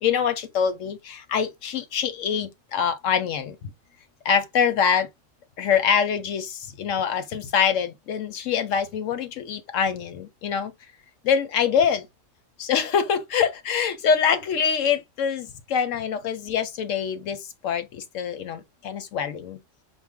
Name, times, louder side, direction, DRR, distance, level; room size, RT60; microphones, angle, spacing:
voice 1, 0.0-3.7 4.2-5.1 5.6-10.7 11.2-12.1 12.6-19.6, left 7 dB, 80° left, 1.1 m, -25 dB
4.5 x 2.1 x 3.5 m
omnidirectional pair, 1.3 m